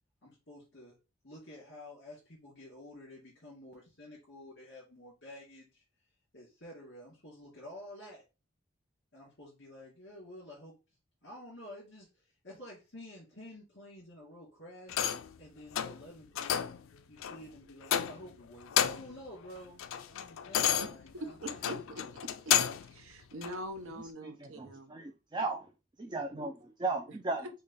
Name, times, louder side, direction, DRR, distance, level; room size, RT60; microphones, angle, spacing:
voice 1, 0.2-1.0 1.2-5.8 6.3-8.2 9.1-10.7 11.2-15.1 15.4-16.6 17.1-21.8, left 1 dB, 55° left, 2.3 m, -50 dB
sound 1, 14.9-15.3 15.7-16.0 16.4-16.8 17.2-17.4 17.8-18.3 18.6-19.2 19.6-22.9 23.4-23.5, left 9 dB, 75° left, 0.4 m, -31 dB
voice 2, 21.1-25.0 26.4-26.5, right 1 dB, 75° right, 0.8 m, -44 dB
voice 3, 24.2-25.7 26.0-27.5, right 3 dB, 20° right, 0.3 m, -36 dB
5.1 x 2.2 x 4.0 m
head